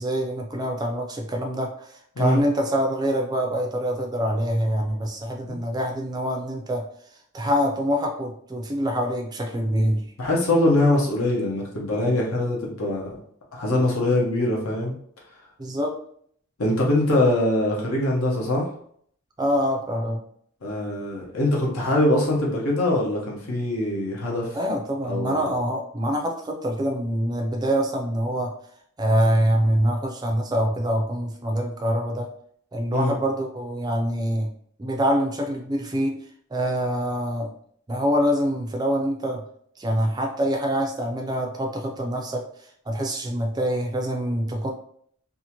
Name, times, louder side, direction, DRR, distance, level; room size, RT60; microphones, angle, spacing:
voice 1, 0.0-6.9 7.3-10.1 15.6-16.0 19.4-20.2 24.5-28.5 29.0-32.3 32.7-34.5 34.8-36.2 36.5-37.5 37.9-39.4 39.8-42.4 42.9-44.7, equal, 20° right, 2 dB, 0.3 m, -25 dB
voice 2, 10.2-13.2 13.5-14.9 16.6-18.7 20.6-24.6 25.0-25.5 32.9-33.1, left 1 dB, 80° left, -2 dB, 0.9 m, -23 dB
2.7 x 2.4 x 2.8 m, 0.63 s
head